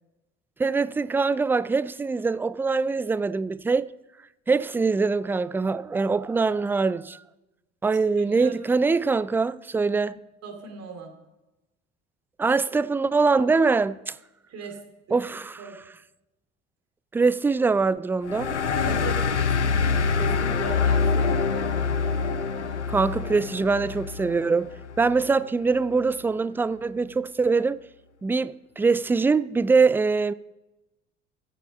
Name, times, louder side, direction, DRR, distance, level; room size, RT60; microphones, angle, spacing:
voice 1, 0.6-3.9 4.5-7.2 7.8-10.1 12.4-14.2 15.1-15.7 17.1-18.6 22.9-24.7 25.0-27.8 28.2-30.3, right 4 dB, 5° right, 0.3 m, -23 dB
voice 2, 8.2-8.7 10.4-11.1 14.5-14.8 15.6-15.8 18.7-22.9, right 5 dB, 45° right, 2.8 m, -39 dB
sound 1, 18.3-25.3, left 5 dB, 85° left, 0.6 m, -25 dB
15.0 x 7.9 x 5.4 m
figure-of-eight pair, 55°, 34 cm